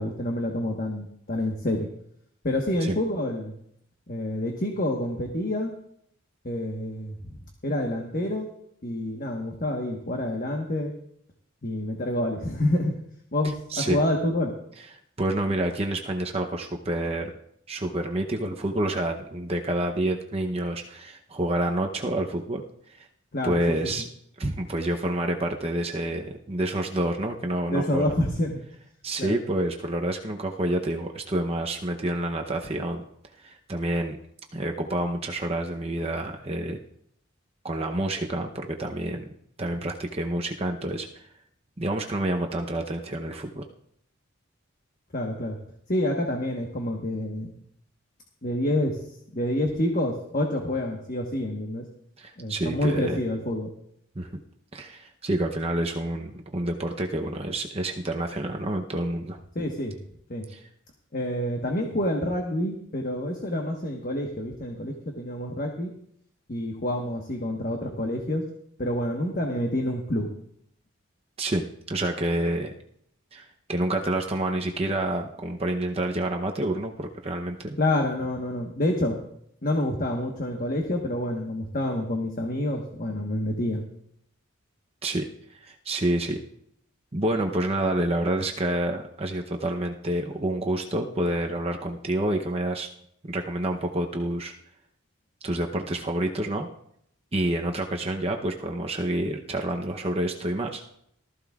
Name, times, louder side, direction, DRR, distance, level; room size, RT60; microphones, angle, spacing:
voice 1, 0.0-1.9 2.4-3.5 4.1-5.7 6.4-7.4 7.6-8.5 8.8-10.9 11.6-12.9 13.3-14.5 23.3-23.8 27.7-28.6 29.2-29.4 45.1-45.6 45.9-47.6 48.4-49.0 49.3-51.8 52.4-53.7 59.5-59.9 60.3-60.5 61.1-65.9 66.5-68.4 68.8-70.3 77.8-79.2 79.6-83.8, left 1 dB, 40° left, 1 dB, 1.3 m, -28 dB
voice 2, 15.2-17.3 17.7-22.6 22.9-23.1 23.4-24.1 24.4-28.1 29.0-33.0 33.4-34.2 34.5-36.8 37.6-39.3 39.6-41.2 41.8-43.6 52.2-53.2 54.2-54.3 54.7-59.4 60.5-60.6 71.4-72.7 73.3-77.8 85.0-85.2 85.5-86.4 87.1-92.9 93.3-94.5 95.4-96.7 97.3-100.8, right 1 dB, 30° right, 2 dB, 0.7 m, -28 dB
18.5 x 14.0 x 2.4 m, 0.71 s
head